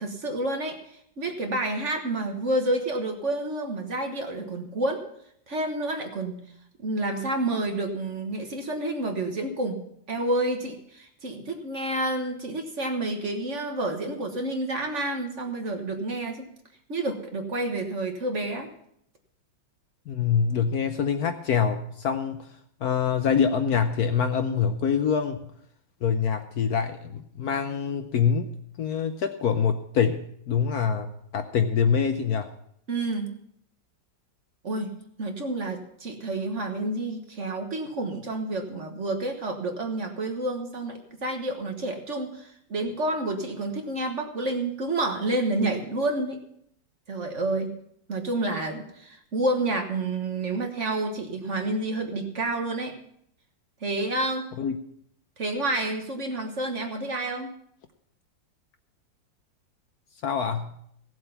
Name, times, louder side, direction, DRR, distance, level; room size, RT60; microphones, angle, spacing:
voice 1, 0.0-5.0 5.5-6.4 6.8-9.8 10.1-16.5 16.9-18.7 32.9-33.3 34.6-46.4 47.1-47.7 48.1-52.9 53.8-54.5 55.4-57.5, right 2 dB, 40° right, 4 dB, 1.5 m, -29 dB
voice 2, 20.1-22.4 22.8-25.4 26.0-28.5 28.8-32.5 54.6-54.8 60.2-60.7, left 7 dB, 65° left, 8 dB, 1.1 m, -25 dB
16.5 x 7.8 x 5.7 m, 0.71 s
omnidirectional pair, 2.0 m